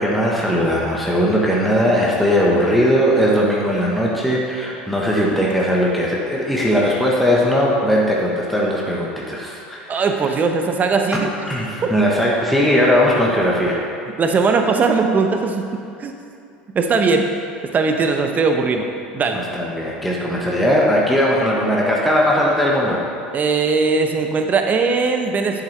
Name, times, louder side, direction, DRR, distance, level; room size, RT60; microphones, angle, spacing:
voice 1, 0.0-10.1 11.1-13.8 19.3-23.0, equal, ahead, -4 dB, 1.2 m, -19 dB
voice 2, 9.9-11.3 14.2-16.1 16.7-17.3 17.7-18.9 19.1-19.4 23.3-25.6, right 4 dB, 30° right, 4 dB, 0.8 m, -19 dB
7.6 x 7.2 x 3.3 m, 2.5 s
hypercardioid pair, 85°, 5 cm